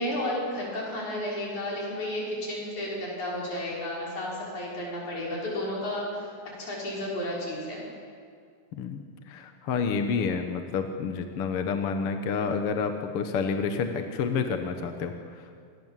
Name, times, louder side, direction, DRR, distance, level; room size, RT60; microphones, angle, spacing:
voice 1, 0.0-7.9, left 1 dB, 70° left, -4 dB, 7.5 m, -32 dB
voice 2, 8.7-15.7, left 5 dB, 55° left, 6 dB, 1.9 m, -29 dB
26.0 x 20.5 x 7.6 m, 2.2 s
omnidirectional pair, 3.4 m